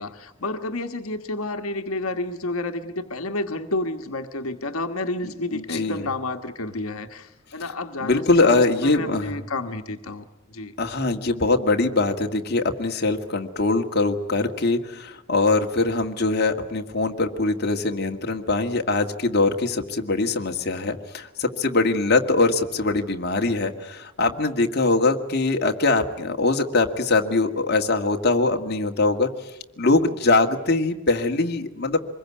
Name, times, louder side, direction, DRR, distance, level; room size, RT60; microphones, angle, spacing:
voice 1, 0.0-10.2 10.5-10.7, left 2 dB, 75° left, 7 dB, 1.5 m, -30 dB
voice 2, 5.5-6.0 8.0-9.3 10.8-29.3 29.8-32.0, left 3 dB, 45° left, 3 dB, 1.9 m, -22 dB
25.5 x 22.0 x 9.6 m, 0.93 s
head